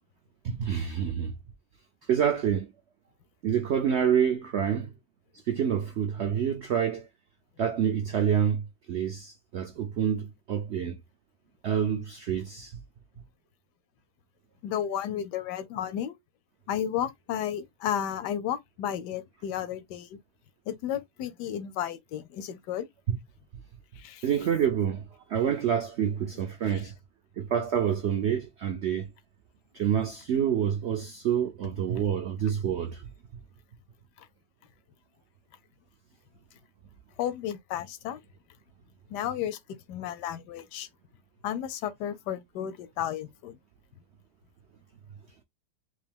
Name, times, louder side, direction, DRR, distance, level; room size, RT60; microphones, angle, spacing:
voice 1, 0.4-1.3 2.1-2.7 3.4-4.9 5.5-7.1 7.6-11.0 11.6-12.8 23.1-23.2 24.2-26.9 27.4-29.1 29.7-33.1, right 8 dB, 75° right, 0.6 m, -27 dB
voice 2, 14.6-16.2 16.7-20.2 20.7-22.9 24.0-24.3 26.7-26.8 34.2-34.3 37.2-38.2 39.1-39.6 39.9-40.9 41.4-43.6, left 10 dB, 85° left, 1.2 m, -33 dB
3.7 x 2.5 x 3.5 m
omnidirectional pair, 1.8 m